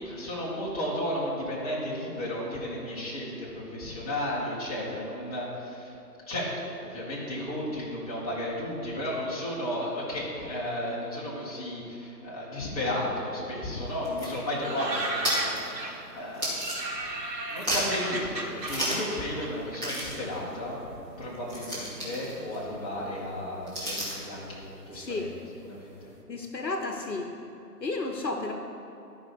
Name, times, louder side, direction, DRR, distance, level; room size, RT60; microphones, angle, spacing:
voice 1, 0.0-5.9 6.3-16.5 17.0-17.1 17.5-20.8 21.2-25.3 25.6-26.1, left 1 dB, 20° left, -7 dB, 1.8 m, -33 dB
sound 1, 13.8-17.2 17.5-18.1 18.6-19.2 19.4-19.5 19.8-24.3, equal, 10° right, 1.3 m, -34 dB
sound 2, 14.6-16.1 16.6-20.4 20.7-21.6 22.2-22.8 23.0-23.1 23.3-25.7 26.0-26.1, right 2 dB, 80° right, 1.5 m, -36 dB
voice 2, 24.9-25.3 26.3-27.3 27.8-28.5, left 3 dB, 80° left, 3 dB, 1.1 m, -32 dB
11.5 x 5.5 x 4.6 m, 2.9 s
figure-of-eight pair, 145°, 50 cm